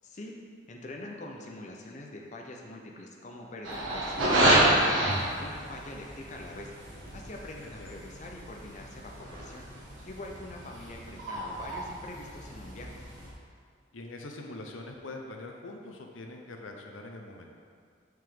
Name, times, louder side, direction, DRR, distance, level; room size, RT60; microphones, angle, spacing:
voice 1, 0.0-0.4 0.7-6.7 7.1-9.7 10.1-13.0, left 1 dB, 35° left, 0 dB, 0.6 m, -44 dB
sound 1, 3.6-13.3, right 1 dB, 90° right, 1.6 m, -30 dB
voice 2, 7.6-7.9 13.9-17.5, left 2 dB, 85° left, 2 dB, 0.7 m, -43 dB
6.8 x 6.3 x 3.6 m, 2.1 s
head